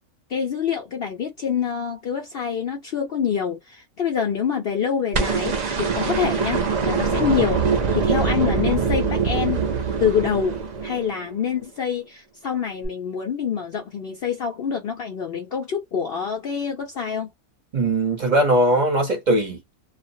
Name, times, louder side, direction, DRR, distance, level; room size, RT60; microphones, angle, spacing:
voice 1, 0.3-9.6 10.0-10.6 10.8-17.3, left 7 dB, 60° left, 0.6 m, -26 dB
sound 1, 5.1-11.3 12.8-12.9, right 5 dB, 80° right, 0.3 m, -23 dB
voice 2, 17.7-19.7, right 1 dB, 40° right, 0.8 m, -20 dB
2.4 x 2.0 x 2.6 m
omnidirectional pair, 1.4 m